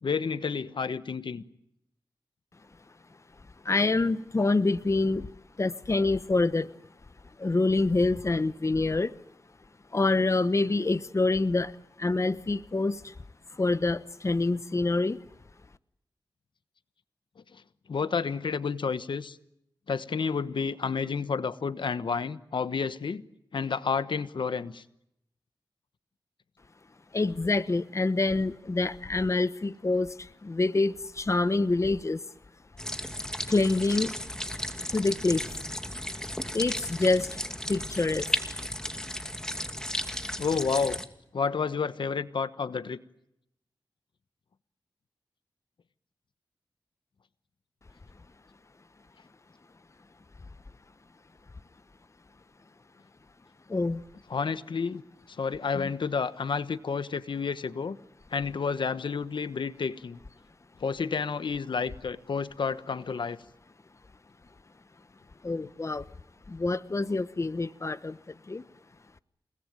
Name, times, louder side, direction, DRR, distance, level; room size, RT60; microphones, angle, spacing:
voice 1, 0.0-1.4 17.5-17.6 17.9-19.4 19.9-23.2 23.5-24.8 40.4-41.0 41.3-43.0 54.3-55.0 55.3-58.0 58.3-60.2 60.8-63.4, left 5 dB, 70° left, 13 dB, 1.2 m, -30 dB
voice 2, 3.6-5.3 5.6-6.7 7.4-9.1 9.9-11.7 12.0-13.1 13.5-15.2 27.1-32.2 33.5-34.1 34.9-35.5 36.5-37.4 37.7-38.3 53.7-54.0 55.7-55.9 65.4-66.1 66.5-68.6, left 3 dB, 35° left, 13 dB, 1.1 m, -26 dB
sound 1, 32.8-41.1, left 1 dB, 10° left, 2.5 m, -35 dB
29.5 x 19.5 x 9.3 m, 0.79 s
cardioid pair, 60°, 8 cm